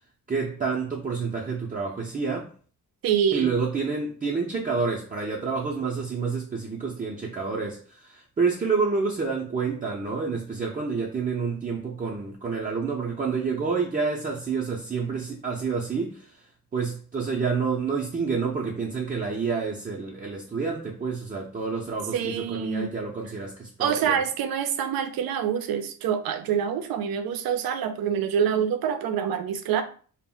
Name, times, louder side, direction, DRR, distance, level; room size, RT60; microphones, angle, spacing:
voice 1, 0.3-2.5 3.3-16.3 16.7-24.2, right 5 dB, 25° right, 0.5 m, -28 dB
voice 2, 3.0-3.5 22.1-22.9 23.8-29.8, right 8 dB, 85° right, 0.5 m, -26 dB
2.1 x 2.0 x 3.6 m
cardioid pair, 80°, 35 cm